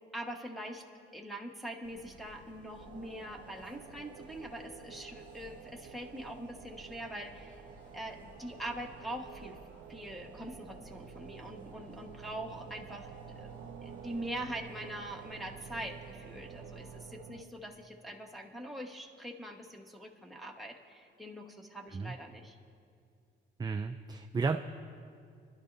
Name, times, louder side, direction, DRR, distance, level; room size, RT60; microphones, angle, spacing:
voice 1, 0.1-0.8 1.1-7.6 7.9-9.6 9.9-13.1 13.3-22.6, right 1 dB, ahead, 0 dB, 1.3 m, -43 dB
sound 1, 1.8-17.0, equal, 40° left, 2.3 m, -55 dB
sound 2, 2.8-17.4, right 8 dB, 80° right, 0.6 m, -51 dB
voice 2, 23.6-24.6, right 4 dB, 20° right, 6 dB, 0.4 m, -33 dB
24.0 x 12.0 x 2.7 m, 2.3 s
cardioid pair, 90°, 20 cm